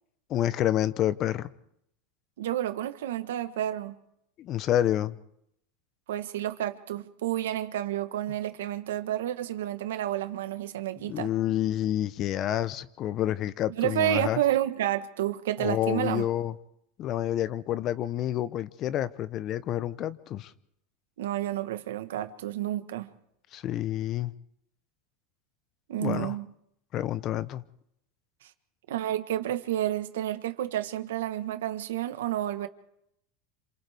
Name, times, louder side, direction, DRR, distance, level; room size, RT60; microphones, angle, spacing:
voice 1, 0.3-1.5 4.4-5.2 11.1-14.4 15.6-16.5 17.0-20.5 23.5-24.3 26.0-26.4 26.9-27.6, left 12 dB, 45° left, 0.8 m, -28 dB
voice 2, 2.4-3.9 6.1-11.3 13.8-16.2 21.2-23.1 25.9-26.4 28.9-32.7, right 13 dB, 90° right, 1.3 m, -30 dB
27.0 x 27.0 x 3.5 m
supercardioid pair, 120°, 0 cm